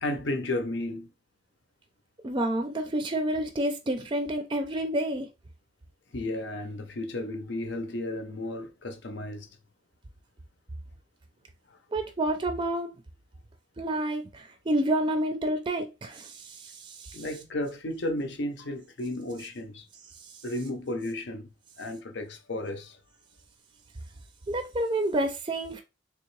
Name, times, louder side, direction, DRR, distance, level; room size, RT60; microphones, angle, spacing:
voice 1, 0.0-1.1 6.1-9.5 17.1-19.9 20.4-21.5 21.8-23.0, left 1 dB, 75° left, 0.7 m, -33 dB
voice 2, 2.2-5.3 11.9-12.9 13.8-17.2 24.5-25.8, right 1 dB, 25° right, 0.4 m, -29 dB
3.5 x 3.0 x 3.2 m
head